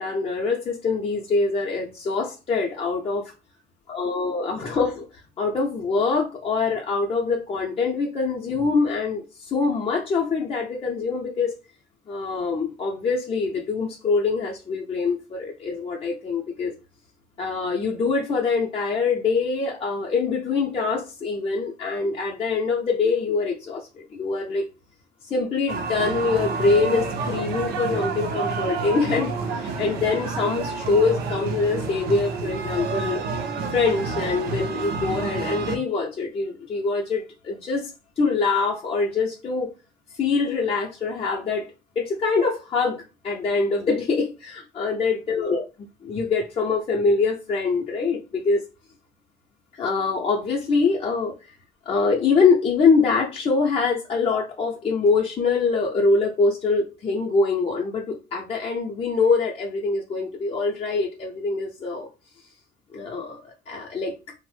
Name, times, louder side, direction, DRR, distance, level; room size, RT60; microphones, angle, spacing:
voice 1, 0.0-3.3 3.9-11.5 12.1-16.7 17.4-24.7 25.2-33.2 33.7-39.7 40.2-41.7 42.0-45.6 46.0-48.6 49.7-51.4 51.9-62.1 62.9-64.1, left 4 dB, 35° left, 0.6 m, -24 dB
sound 1, 25.7-35.8, right 4 dB, 70° right, 0.6 m, -29 dB
3.0 x 2.0 x 3.2 m
cardioid pair, 110°, 17 cm